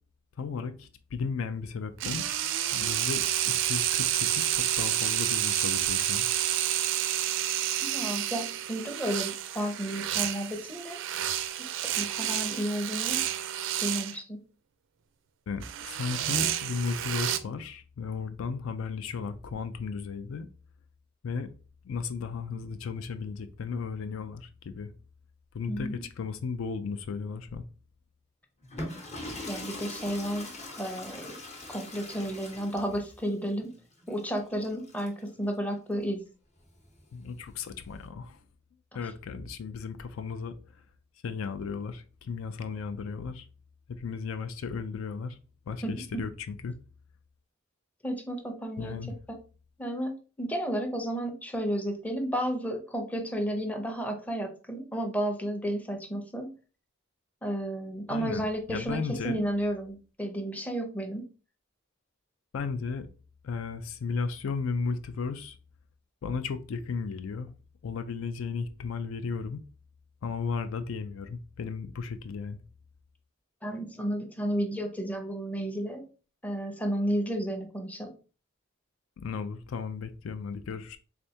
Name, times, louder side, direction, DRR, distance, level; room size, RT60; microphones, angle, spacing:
voice 1, 0.4-2.2 2.7-6.3 15.5-20.5 21.2-21.5 21.8-24.9 25.5-27.6 37.1-38.4 38.9-40.6 41.2-43.5 43.9-45.4 45.7-46.7 48.8-49.2 58.1-59.4 62.5-63.1 63.4-65.6 66.2-67.5 67.8-69.6 70.2-72.6 79.2-81.0, left 5 dB, 75° left, 0.4 m, -35 dB
sound 1, 2.0-14.1 15.6-17.4, right 11 dB, 65° right, 0.4 m, -29 dB
voice 2, 7.8-11.0 12.0-13.2 13.8-14.4 25.7-26.0 29.5-30.5 30.8-31.4 31.7-33.7 34.1-36.2 45.8-46.2 48.0-49.0 49.8-56.5 57.4-61.2 73.6-76.0 76.4-78.1, equal, 5° left, 0.6 m, -32 dB
sound 2, 28.6-35.3 36.6-38.0, left 1 dB, 35° left, 0.9 m, -42 dB
3.4 x 3.3 x 2.7 m
head